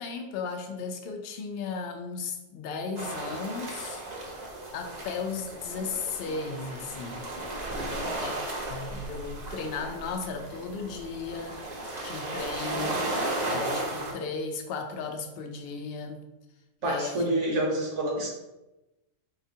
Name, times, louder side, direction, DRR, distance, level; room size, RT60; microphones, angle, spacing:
voice 1, 0.0-4.0 4.7-7.3 8.2-11.6 12.0-13.0 13.5-16.2 16.8-17.4, left 4 dB, 60° left, 4 dB, 0.7 m, -35 dB
sound 1, 3.0-14.1, right 2 dB, 40° right, 0.7 m, -35 dB
voice 2, 7.7-8.1 16.8-18.3, right 1 dB, 65° right, -1 dB, 1.2 m, -28 dB
4.0 x 3.3 x 2.8 m, 0.99 s
omnidirectional pair, 1.4 m